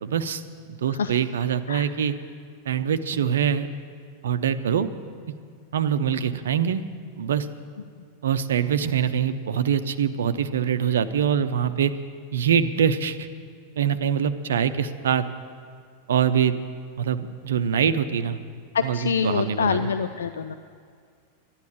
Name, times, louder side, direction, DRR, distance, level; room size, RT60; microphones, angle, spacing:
voice 1, 0.0-0.4 0.7-2.2 2.6-3.7 4.2-4.9 5.7-6.8 7.2-7.5 8.2-11.9 12.3-13.3 13.8-15.2 16.1-16.6 17.0-18.4 18.8-19.9, right 8 dB, 65° right, 12 dB, 0.7 m, -24 dB
voice 2, 18.7-20.5, left 6 dB, 65° left, 10 dB, 0.4 m, -25 dB
12.5 x 10.5 x 8.9 m, 2.1 s
figure-of-eight pair, 90°, 0 cm